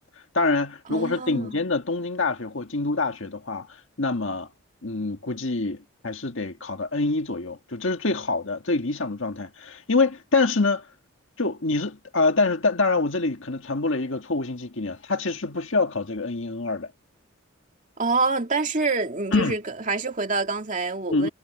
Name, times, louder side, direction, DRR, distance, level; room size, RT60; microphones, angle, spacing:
voice 1, 0.3-4.5 4.8-10.9 11.4-16.9 19.3-19.6 21.1-21.3, left 3 dB, 65° left, 1.8 m, -25 dB
voice 2, 0.9-1.6 18.0-21.3, right 3 dB, 35° right, 2.3 m, -26 dB
head